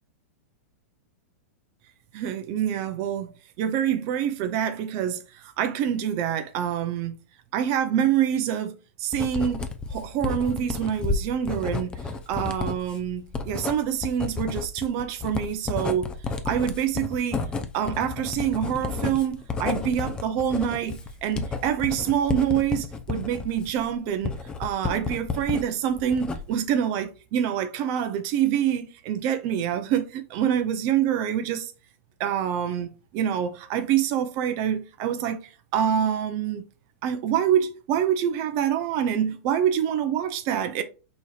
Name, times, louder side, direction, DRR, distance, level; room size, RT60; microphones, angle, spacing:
voice 1, 2.1-3.3 3.6-7.1 7.5-12.0 12.3-16.1 16.4-17.5 17.7-24.3 24.6-31.7 32.2-35.4 35.7-36.6 37.0-40.8, right 9 dB, 35° right, 0.6 m, -26 dB
Writing, 9.1-25.6 26.0-26.7, left 4 dB, 10° left, 0.5 m, -31 dB
4.8 x 4.1 x 2.3 m
supercardioid pair, 160°, 8 cm